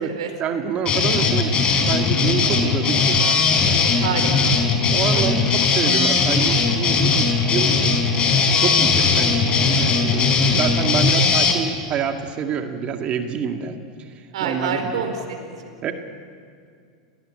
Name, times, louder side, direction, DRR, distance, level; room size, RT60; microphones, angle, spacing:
voice 1, 0.4-3.8 4.9-8.0 8.6-13.8 14.1-15.0 15.8-15.9, right 7 dB, 40° right, 5 dB, 2.0 m, -27 dB
sound 1, 0.8-11.5, left 4 dB, 35° left, 4.6 m, -19 dB
voice 2, 4.0-4.5 5.1-5.3 14.3-15.5, right 6 dB, 80° right, 5 dB, 4.6 m, -27 dB
29.5 x 18.5 x 8.9 m, 2.2 s
hypercardioid pair, 105°, 3 cm